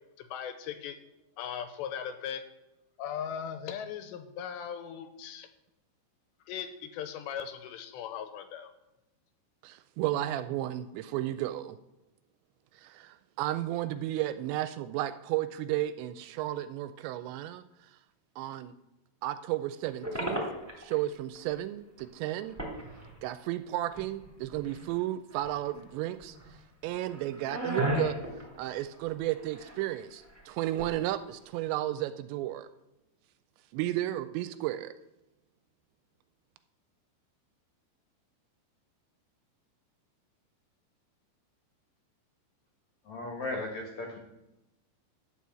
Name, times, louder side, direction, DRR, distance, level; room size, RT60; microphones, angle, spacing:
voice 1, 0.2-1.0 1.4-2.4 3.0-5.5 6.5-8.7, left 8 dB, 80° left, 8 dB, 2.8 m, -38 dB
voice 2, 9.6-11.8 12.8-17.6 18.4-18.7 19.2-20.4 20.8-22.6 23.2-26.4 26.8-28.2 28.6-32.7 33.7-34.9, right 14 dB, 85° right, 12 dB, 2.7 m, -33 dB
sound 1, 20.0-21.1 21.3-21.4 22.0-22.1 22.3-23.4 24.0-25.0 25.3-25.8 26.2-26.6 26.9-29.8 30.1-31.0, equal, 5° right, 1.9 m, -36 dB
voice 3, 43.1-44.2, left 2 dB, 60° left, 1 dB, 2.0 m, -36 dB
11.5 x 5.5 x 7.5 m, 0.95 s
omnidirectional pair, 5.3 m